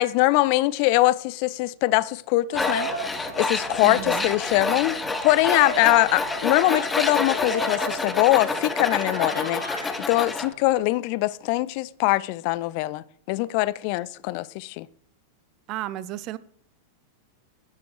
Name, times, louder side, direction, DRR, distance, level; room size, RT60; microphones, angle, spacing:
voice 1, 0.0-2.9 3.2-5.0 5.2-9.6 10.1-14.9, left 19 dB, 45° left, 0.4 m, -22 dB
Tools, 2.5-10.5, left 3 dB, 10° left, 0.9 m, -28 dB
sound 1, 2.5-10.8, right 1 dB, 85° right, 1.9 m, -36 dB
voice 2, 3.8-4.3 15.7-16.4, right 14 dB, 40° right, 0.6 m, -33 dB
11.5 x 9.2 x 3.3 m
figure-of-eight pair, 90°, 0 cm